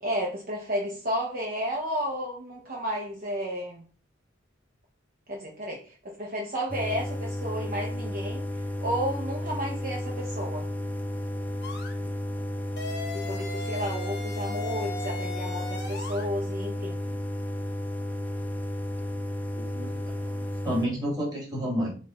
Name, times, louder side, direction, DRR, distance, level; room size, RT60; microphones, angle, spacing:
voice 1, 0.0-3.8 5.3-8.4 8.8-10.7 13.1-17.0, equal, 50° right, -2 dB, 0.8 m, -32 dB
sound 1, 6.7-20.9, left 1 dB, 10° left, 0.3 m, -33 dB
sound 2, 11.6-11.9 12.8-16.3, left 4 dB, 60° left, 0.9 m, -38 dB
voice 2, 19.6-21.9, equal, 20° right, -4 dB, 1.7 m, -31 dB
4.6 x 2.3 x 4.3 m, 0.39 s
head